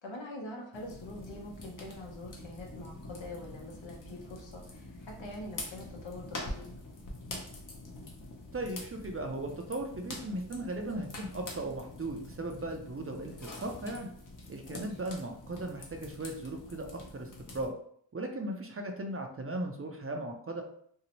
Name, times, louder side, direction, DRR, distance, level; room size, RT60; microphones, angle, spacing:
voice 1, 0.0-6.6 14.6-14.9, left 1 dB, 90° left, -1 dB, 0.8 m, -44 dB
sound 1, 0.7-17.7, left 2 dB, 45° left, 0.6 m, -45 dB
voice 2, 8.5-14.1 14.5-17.7 18.1-20.6, right 1 dB, 35° right, 3 dB, 0.4 m, -37 dB
2.7 x 2.0 x 2.9 m, 0.63 s
wide cardioid pair, 60°, 44 cm